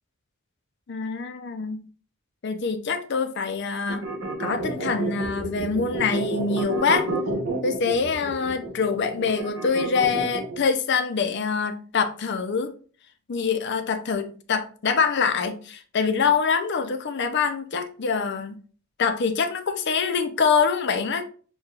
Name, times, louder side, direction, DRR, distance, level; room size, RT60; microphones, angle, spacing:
voice 1, 0.9-1.8 2.4-4.1 4.4-7.1 7.6-12.7 13.3-18.6 19.0-21.2, left 5 dB, 55° left, 0.5 m, -25 dB
sound 1, 3.9-10.6, right 2 dB, 75° right, 1.1 m, -30 dB
6.3 x 2.3 x 2.3 m
head